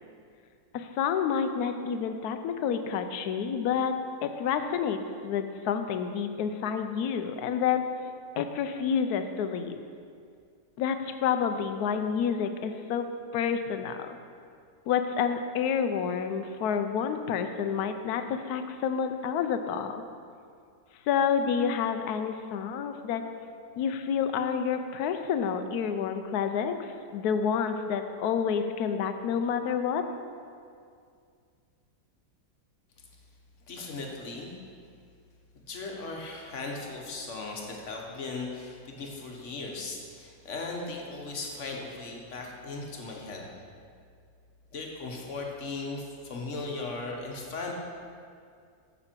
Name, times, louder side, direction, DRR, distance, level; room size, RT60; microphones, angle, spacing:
voice 1, 0.7-3.9 4.2-7.9 8.4-9.9 10.8-13.1 13.3-14.2 14.9-20.0 21.1-23.2 23.8-30.0, left 7 dB, 75° left, 8 dB, 1.1 m, -29 dB
voice 2, 33.7-34.5 35.5-43.5 44.7-47.7, left 3 dB, 50° left, 0 dB, 1.3 m, -37 dB
9.2 x 6.7 x 4.5 m, 2.2 s
omnidirectional pair, 1.8 m